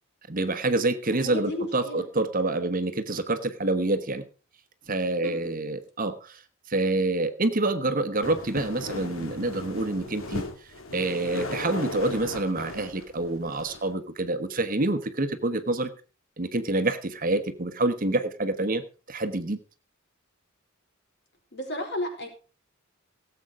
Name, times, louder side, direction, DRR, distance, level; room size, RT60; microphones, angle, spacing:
voice 1, 0.3-4.2 4.9-6.4 6.7-10.4 10.9-15.9 16.4-18.8 19.1-19.6, right 2 dB, 40° right, 9 dB, 1.2 m, -27 dB
voice 2, 1.1-2.1 5.2-5.3 21.5-22.3, left 1 dB, 55° left, 2 dB, 4.6 m, -33 dB
sound 1, 8.2-13.9, left 2 dB, 80° left, 2.4 m, -37 dB
17.5 x 8.0 x 4.9 m, 0.38 s
head